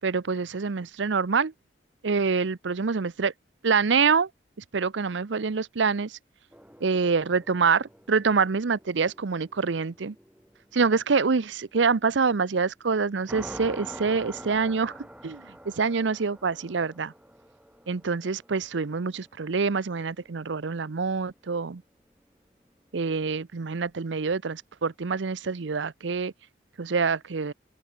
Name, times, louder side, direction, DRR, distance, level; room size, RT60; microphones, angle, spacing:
voice 1, 0.0-1.5 2.0-3.3 3.6-4.3 4.7-6.2 6.8-10.1 10.7-14.9 15.2-17.1 17.9-21.8 22.9-26.3 26.8-27.5, right 5 dB, 80° right, 0.7 m, -26 dB
sound 1, 6.5-12.9 13.2-21.0, equal, 5° right, 5.4 m, -47 dB
open air
head